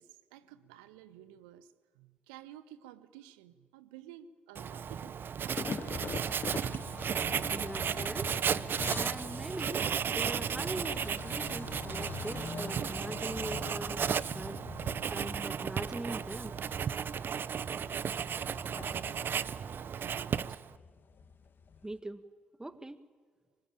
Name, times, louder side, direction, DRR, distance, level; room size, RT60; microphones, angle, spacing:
voice 1, 0.0-6.0 18.7-19.5 19.9-20.7 22.6-22.8, right 11 dB, 75° right, 1.2 m, -54 dB
Writing, 4.5-20.8, right 7 dB, 45° right, 0.8 m, -34 dB
sound 1, 5.6-21.9, left 6 dB, 45° left, 1.6 m, -45 dB
voice 2, 7.5-8.7 8.9-9.8 10.1-14.7 15.1-16.6 21.8-22.3 22.6-23.0, right 1 dB, 15° right, 1.9 m, -41 dB
25.5 x 24.5 x 8.9 m
figure-of-eight pair, 40°, 5 cm